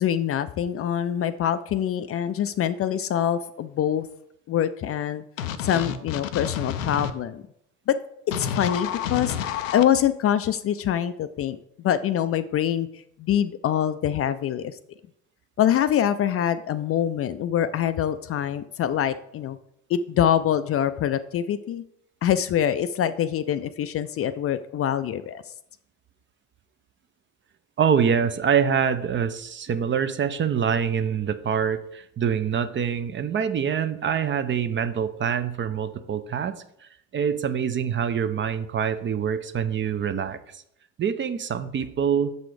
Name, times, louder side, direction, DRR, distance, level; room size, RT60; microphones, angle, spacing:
voice 1, 0.0-4.1 4.5-5.2 5.6-7.4 7.9-8.0 8.3-9.4 9.7-11.6 11.8-12.9 13.2-14.8 15.6-19.6 19.9-21.8 22.2-25.4, left 10 dB, 40° left, 12 dB, 0.4 m, -24 dB
sound 1, 5.4-7.1 8.3-9.8, left 8 dB, 85° left, 0.5 m, -29 dB
voice 2, 27.8-40.6 41.0-42.3, right 7 dB, 30° right, 11 dB, 0.6 m, -25 dB
6.6 x 4.1 x 4.8 m, 0.75 s
hypercardioid pair, 60°, 38 cm